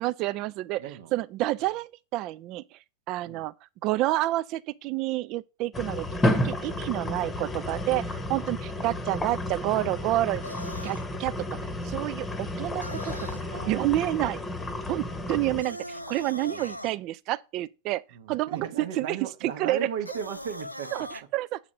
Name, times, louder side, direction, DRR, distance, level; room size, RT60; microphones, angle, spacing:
voice 1, 0.0-0.8 1.1-2.8 3.1-3.5 3.8-10.4 10.8-11.4 11.8-13.1 13.4-14.4 14.9-18.0 18.3-19.9 20.9-21.6, right 16 dB, 40° right, 0.4 m, -29 dB
voice 2, 0.8-1.1 3.3-3.4 6.8-7.0 8.8-9.0 13.5-14.4 15.1-15.2 16.5-16.7 18.1-20.9, right 7 dB, 55° right, 1.0 m, -37 dB
sound 1, 5.7-15.6, left 1 dB, 10° left, 1.0 m, -32 dB
sound 2, 10.4-11.0 12.8-13.4 15.6-16.9 20.0-21.2, left 1 dB, 90° left, 0.5 m, -40 dB
7.5 x 4.0 x 5.0 m
figure-of-eight pair, 90°, 0 cm